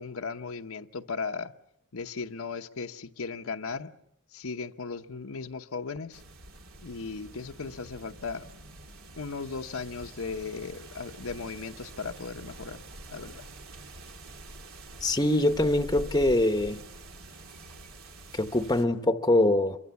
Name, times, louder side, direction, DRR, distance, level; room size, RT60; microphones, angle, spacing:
voice 1, 0.0-1.5 1.9-3.9 4.3-6.2 6.8-8.4 9.2-12.8 13.1-13.5, left 4 dB, 75° left, 0.9 m, -37 dB
sound 1, 6.1-18.8, right 2 dB, 75° right, 2.8 m, -46 dB
voice 2, 15.0-16.8 18.3-19.8, left 1 dB, 20° left, 1.0 m, -24 dB
27.5 x 23.5 x 7.1 m
head